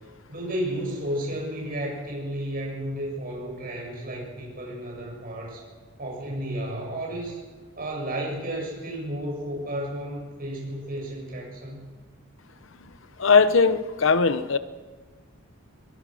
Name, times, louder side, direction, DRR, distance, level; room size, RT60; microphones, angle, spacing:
voice 1, 0.3-5.6 6.0-7.4 7.8-11.8, right 1 dB, 40° right, -1 dB, 7.7 m, -32 dB
voice 2, 13.2-14.6, left 5 dB, 60° left, 13 dB, 0.8 m, -19 dB
22.5 x 21.0 x 6.5 m, 1.4 s
head